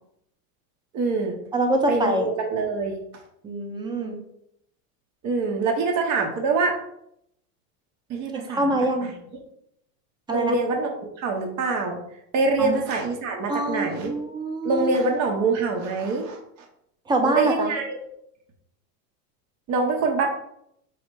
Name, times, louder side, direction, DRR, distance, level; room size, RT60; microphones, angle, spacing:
voice 1, 0.9-1.4 1.9-3.0 5.2-6.8 8.1-8.7 9.0-9.1 10.3-10.9 11.2-12.0 12.3-14.1 14.6-16.4 17.2-18.0 19.7-20.2, right 3 dB, 35° right, 2 dB, 0.9 m, -24 dB
voice 2, 1.5-2.3 3.4-4.2 8.3-9.1 10.3-10.6 12.6-12.7 13.5-14.9 17.1-17.7, right 2 dB, 10° right, 4 dB, 0.4 m, -25 dB
4.8 x 2.1 x 4.6 m, 0.75 s
supercardioid pair, 120°, 47 cm